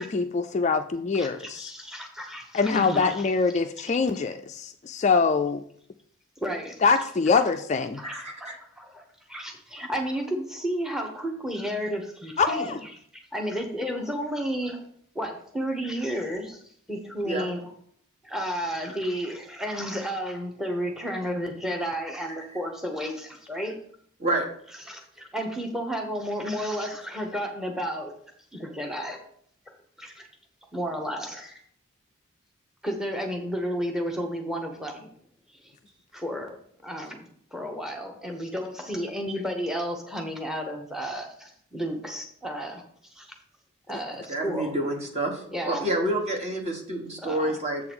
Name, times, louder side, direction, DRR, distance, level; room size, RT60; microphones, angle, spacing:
voice 1, 0.0-1.7 2.5-5.6 6.8-8.0 12.4-12.8, left 4 dB, 35° left, 7 dB, 0.3 m, -24 dB
voice 2, 1.1-3.2 6.4-6.8 8.0-14.9 15.1-16.6 16.9-17.7 18.2-23.8 24.9-28.1 28.5-29.2 29.7-30.3 30.7-31.6 32.8-35.1 35.5-35.7 36.1-36.5 36.8-42.8 43.1-43.3 43.9-44.7 45.5-45.9 47.2-47.6, equal, ahead, 3 dB, 0.8 m, -32 dB
voice 3, 8.0-8.6 17.2-17.5 24.2-24.4 44.3-47.8, right 1 dB, 30° right, 2 dB, 1.3 m, -28 dB
7.6 x 3.8 x 6.0 m, 0.62 s
head